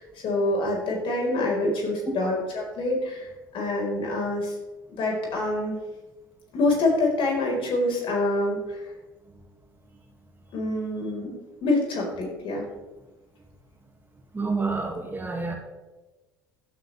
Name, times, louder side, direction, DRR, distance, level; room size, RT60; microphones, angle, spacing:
voice 1, 0.0-4.5 5.0-5.8 6.5-8.9 10.5-12.7, left 2 dB, 55° left, -1 dB, 4.7 m, -26 dB
voice 2, 14.3-15.5, right 3 dB, 20° right, 2 dB, 2.3 m, -28 dB
15.5 x 10.0 x 3.5 m, 1.2 s
hypercardioid pair, 65°, 11 cm